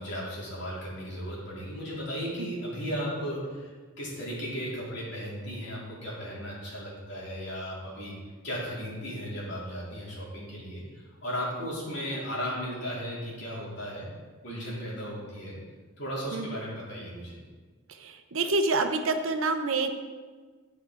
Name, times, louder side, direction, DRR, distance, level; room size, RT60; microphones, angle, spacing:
voice 1, 0.0-14.1 14.4-15.6 16.0-17.4, equal, 55° left, -5 dB, 2.7 m, -36 dB
voice 2, 18.0-19.9, right 3 dB, 65° right, 7 dB, 0.7 m, -27 dB
9.5 x 5.0 x 4.6 m, 1.4 s
head